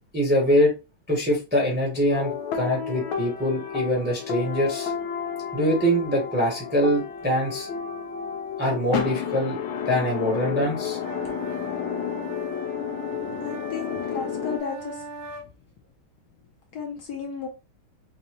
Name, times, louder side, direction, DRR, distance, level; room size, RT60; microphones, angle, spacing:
voice 1, 0.1-0.7 1.1-4.9 5.5-7.7 8.6-9.6 9.9-11.0, equal, 10° right, -2 dB, 0.7 m, -23 dB
sound 1, 2.1-14.6, left 7 dB, 80° left, 1.5 m, -31 dB
sound 2, 11.0-15.5, right 2 dB, 75° right, 0.8 m, -39 dB
voice 2, 13.4-15.0 16.7-17.5, left 5 dB, 65° left, 1 dB, 1.1 m, -33 dB
4.0 x 2.2 x 2.9 m, 0.28 s
omnidirectional pair, 2.3 m